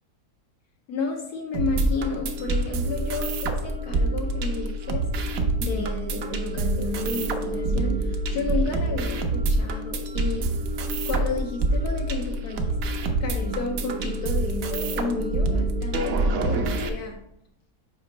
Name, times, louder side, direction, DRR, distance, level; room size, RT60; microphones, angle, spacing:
voice 1, 0.9-5.1 5.6-10.5 11.0-17.2, left 4 dB, 75° left, 1 dB, 1.2 m, -32 dB
sound 1, 1.5-16.9, right 2 dB, 65° right, 1.1 m, -26 dB
7.3 x 4.9 x 3.2 m, 0.77 s
omnidirectional pair, 1.7 m